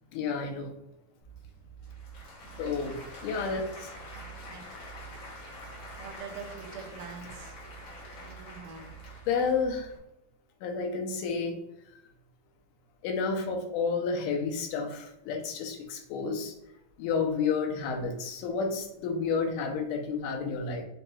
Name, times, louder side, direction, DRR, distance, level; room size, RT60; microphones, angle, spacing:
voice 1, 0.1-0.8 2.6-3.9 9.3-9.9 10.6-11.6 11.9-12.0 13.0-16.5 17.0-20.8, left 5 dB, 80° left, 3 dB, 2.1 m, -31 dB
Applause / Crowd, 1.2-10.0, right 1 dB, 60° left, 1.3 m, -45 dB
voice 2, 2.4-2.9 4.1-4.6 5.8-7.6 8.2-9.0, right 6 dB, 90° right, 4 dB, 2.3 m, -45 dB
5.5 x 3.9 x 2.3 m, 0.84 s
omnidirectional pair, 3.8 m